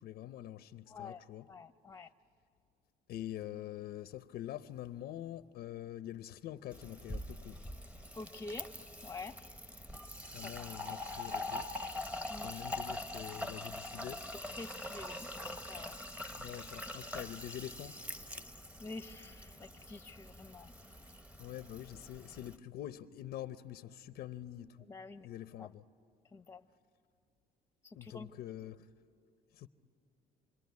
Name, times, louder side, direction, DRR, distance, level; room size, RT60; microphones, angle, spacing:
voice 1, 0.0-1.5 3.1-7.6 10.3-11.7 12.3-14.3 16.4-18.0 21.4-24.8 25.2-25.8 28.0-28.8 29.5-29.7, left 12 dB, 70° left, 0.6 m, -45 dB
voice 2, 0.9-1.2 1.5-2.1 8.1-8.7 9.0-9.4 10.6-10.7 12.3-12.5 14.5-16.0 18.8-20.7 24.9-25.3 25.6-25.7 26.3-26.6 27.8-28.3, left 3 dB, 15° left, 0.7 m, -47 dB
Fill (with liquid), 6.7-22.6, left 1 dB, 10° right, 1.0 m, -44 dB
28.0 x 22.0 x 9.5 m
cardioid pair, 110°, 17 cm